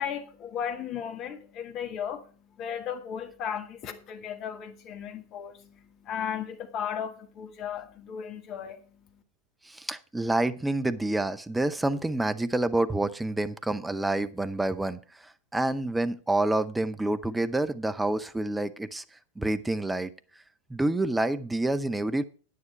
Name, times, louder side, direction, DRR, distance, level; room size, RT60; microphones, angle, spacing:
voice 1, 0.0-9.2, left 8 dB, 35° left, 1.5 m, -36 dB
voice 2, 9.6-19.0 19.4-20.1 20.7-22.2, right 2 dB, 5° right, 0.7 m, -28 dB
9.6 x 9.5 x 4.5 m
figure-of-eight pair, 90°, 0 cm